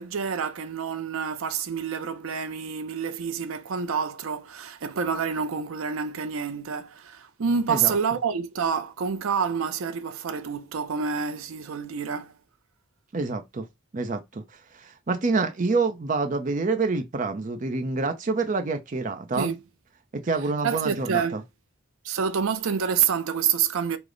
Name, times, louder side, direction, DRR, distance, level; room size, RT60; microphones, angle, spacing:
voice 1, 0.0-12.3 19.4-19.6 20.6-21.4 22.0-24.0, right 6 dB, 85° right, 0.5 m, -28 dB
voice 2, 13.1-13.7 13.9-14.4 14.8-19.5 20.2-21.4, right 3 dB, 40° right, 0.5 m, -27 dB
4.9 x 2.0 x 3.8 m
head